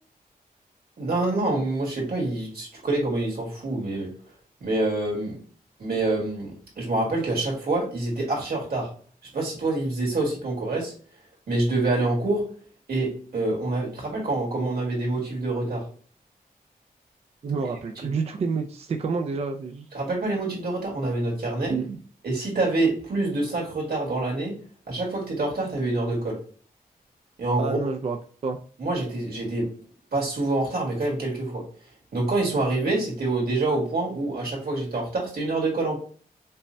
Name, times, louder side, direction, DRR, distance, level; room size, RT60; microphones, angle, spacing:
voice 1, 1.0-4.1 4.6-5.3 5.8-8.9 9.3-10.9 11.5-12.4 12.9-15.8 18.0-18.1 19.9-21.7 22.2-24.5 24.9-26.4 27.4-27.8 28.8-29.7 30.1-31.6 32.1-36.0, right 2 dB, 90° right, -2 dB, 1.8 m, -26 dB
voice 2, 17.4-19.9 21.7-22.0 27.6-28.2 28.4-28.6, right 4 dB, 45° right, 4 dB, 0.4 m, -28 dB
5.3 x 2.1 x 2.6 m, 0.43 s
wide cardioid pair, 180°, 15 cm